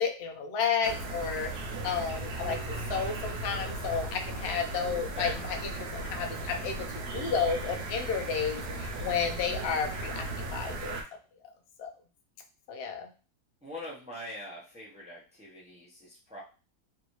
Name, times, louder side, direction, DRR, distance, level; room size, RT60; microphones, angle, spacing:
voice 1, 0.0-1.5 1.8-2.6 2.9-11.0 11.8-11.9 12.7-13.1, left 6 dB, 65° left, 4 dB, 0.6 m, -32 dB
sound 1, 0.8-11.0, right 2 dB, 90° right, 1.2 m, -37 dB
voice 2, 13.6-16.4, left 1 dB, 5° right, -5 dB, 0.6 m, -42 dB
3.1 x 2.6 x 3.0 m, 0.35 s
omnidirectional pair, 1.7 m